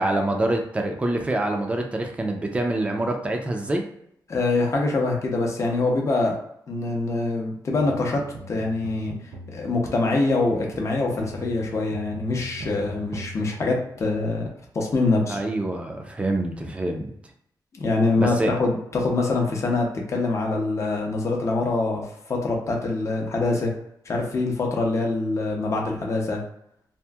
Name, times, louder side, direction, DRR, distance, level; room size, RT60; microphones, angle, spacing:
voice 1, 0.0-3.8 15.3-17.1 18.2-18.5, right 1 dB, 15° right, 3 dB, 0.4 m, -26 dB
voice 2, 4.3-6.4 6.7-9.1 9.5-14.5 14.7-15.4 17.7-22.0 22.3-23.7 24.1-26.4, left 3 dB, 40° left, 0 dB, 0.6 m, -24 dB
sound 1, 7.7-14.4, right 1 dB, 70° right, 0.5 m, -41 dB
2.8 x 2.5 x 2.3 m, 0.73 s
wide cardioid pair, 155°, 8 cm